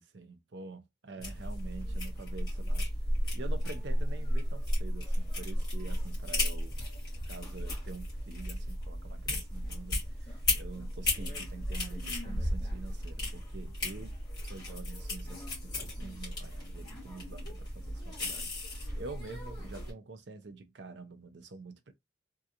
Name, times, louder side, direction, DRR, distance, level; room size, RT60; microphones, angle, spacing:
voice 1, 0.0-2.9 3.3-6.8 7.2-14.2 14.4-21.9, right 3 dB, 80° right, 0.6 m, -47 dB
sound 1, 1.2-19.9, left 1 dB, 25° left, 1.9 m, -34 dB
3.6 x 2.3 x 2.8 m
head